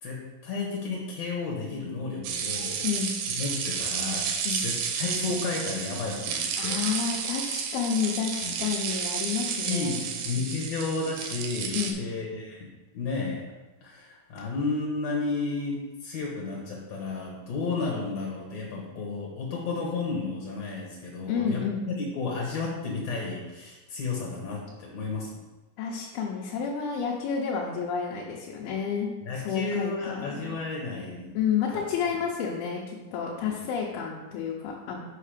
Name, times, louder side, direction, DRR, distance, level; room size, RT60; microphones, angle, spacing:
voice 1, 0.0-2.9 3.4-6.8 8.4-8.5 9.6-13.4 13.8-25.3 29.2-31.4 31.7-31.9 33.4-33.6, left 3 dB, 60° left, -2 dB, 1.9 m, -32 dB
sound 1, 2.2-11.9, right 6 dB, 75° right, 2.3 m, -31 dB
voice 2, 2.8-3.2 4.5-4.7 6.6-10.0 11.7-12.0 21.3-21.9 25.8-29.1 29.4-30.6 31.3-35.0, left 7 dB, 85° left, -3 dB, 2.8 m, -30 dB
5.9 x 5.5 x 5.0 m, 1.1 s
omnidirectional pair, 4.3 m